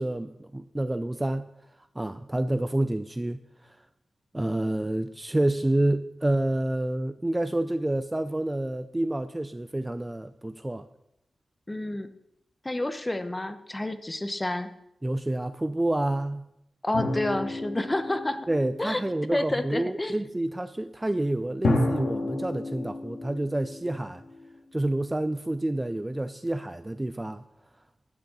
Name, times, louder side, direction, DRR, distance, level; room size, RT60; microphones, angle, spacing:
voice 1, 0.0-1.5 2.0-3.8 4.3-10.8 15.0-16.4 18.5-24.2 24.7-27.4, right 1 dB, 15° right, 11 dB, 0.5 m, -28 dB
voice 2, 11.7-12.1 12.6-14.7 16.8-18.4 18.8-19.0 19.3-20.2, left 1 dB, 15° left, 10 dB, 1.0 m, -29 dB
sound 1, 16.9-19.3 21.6-24.5, left 2 dB, 70° left, 2.4 m, -31 dB
11.5 x 6.7 x 8.4 m, 0.81 s
wide cardioid pair, 110°, 0 cm